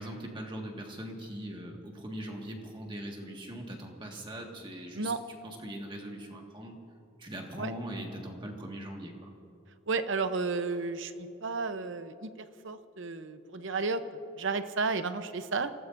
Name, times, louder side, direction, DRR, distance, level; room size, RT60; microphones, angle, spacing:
voice 1, 0.0-6.8 7.2-9.3, right 1 dB, 20° right, 1 dB, 1.8 m, -41 dB
voice 2, 9.9-12.3 12.6-14.0 14.4-15.7, right 4 dB, 60° right, 10 dB, 0.8 m, -32 dB
27.5 x 17.5 x 2.6 m, 2.7 s
head